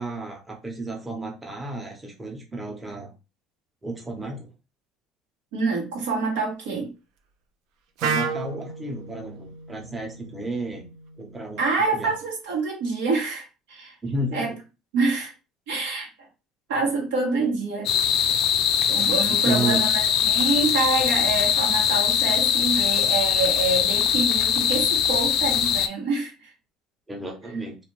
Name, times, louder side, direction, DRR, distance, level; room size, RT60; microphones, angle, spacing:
voice 1, 0.0-3.1 3.8-4.5 8.0-10.9 11.2-11.6 11.9-12.1 14.0-14.6 19.3-19.8 27.1-27.8, right 2 dB, 15° right, 1 dB, 0.9 m, -32 dB
voice 2, 5.5-6.9 11.6-13.9 14.3-14.5 14.9-15.3 15.7-16.1 16.7-17.9 18.9-26.5, right 3 dB, 90° right, -1 dB, 1.2 m, -26 dB
Wind instrument woodwind instrument, 8.0-11.9, right 5 dB, 70° right, 0.5 m, -33 dB
sound 1, 17.9-25.9, left 9 dB, 65° left, 0.3 m, -22 dB
2.5 x 2.5 x 3.0 m, 0.29 s
supercardioid pair, 95°, 0 cm